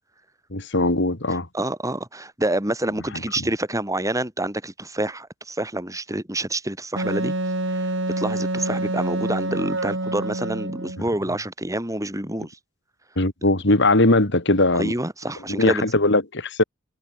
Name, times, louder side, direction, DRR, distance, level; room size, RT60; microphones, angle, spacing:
voice 1, 0.5-1.5 13.2-14.9 15.5-16.6, left 2 dB, 60° left, 3.3 m, -20 dB
voice 2, 1.5-7.3 7.7-12.6 14.7-15.9, right 1 dB, 15° right, 5.4 m, -27 dB
Wind instrument woodwind instrument, 7.0-11.0, right 1 dB, 65° right, 7.0 m, -27 dB
head